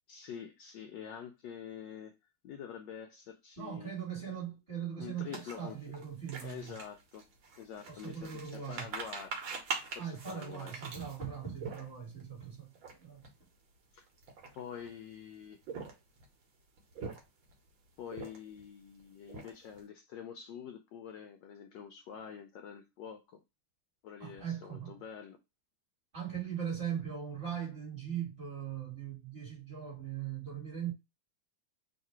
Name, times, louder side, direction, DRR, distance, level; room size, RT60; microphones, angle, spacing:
voice 1, 0.1-2.1 2.4-3.9 5.0-5.8 6.4-7.2 7.6-9.3 9.8-10.7 13.9-14.0 14.6-15.6 18.0-23.4 24.0-25.4, left 8 dB, 75° left, 1.0 m, -46 dB
voice 2, 3.6-6.8 7.9-8.9 10.0-12.7 13.0-13.2 24.2-24.9 26.1-30.9, right 8 dB, 30° right, 1.9 m, -40 dB
sound 1, 5.3-12.2 12.7-12.9 13.2-13.4 14.1-14.9 15.5-16.3 16.8-17.5 18.1-18.6 19.0-19.8, right 4 dB, 70° right, 1.7 m, -43 dB
3.8 x 2.6 x 4.3 m
omnidirectional pair, 2.3 m